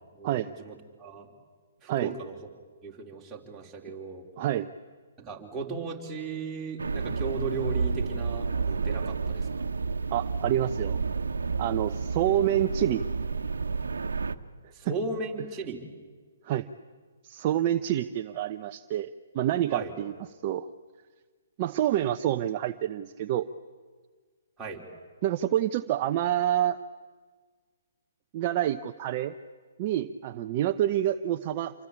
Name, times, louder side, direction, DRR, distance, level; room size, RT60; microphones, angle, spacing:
voice 1, 0.2-1.3 1.8-2.4 2.8-4.2 5.2-9.7 14.7-15.8 19.7-19.9 24.6-24.8, right 4 dB, 15° right, -2 dB, 4.1 m, -36 dB
voice 2, 4.4-4.7 10.1-11.0 11.6-13.0 14.9-15.0 16.4-16.7 17.2-20.1 20.4-20.7 21.6-23.5 25.2-26.8 28.3-29.3 29.8-31.7, right 12 dB, 35° right, 8 dB, 0.8 m, -27 dB
sound 1, 6.8-14.3, right 4 dB, 85° right, 1.2 m, -30 dB
27.5 x 24.0 x 8.6 m, 1.5 s
hypercardioid pair, 145°, 0 cm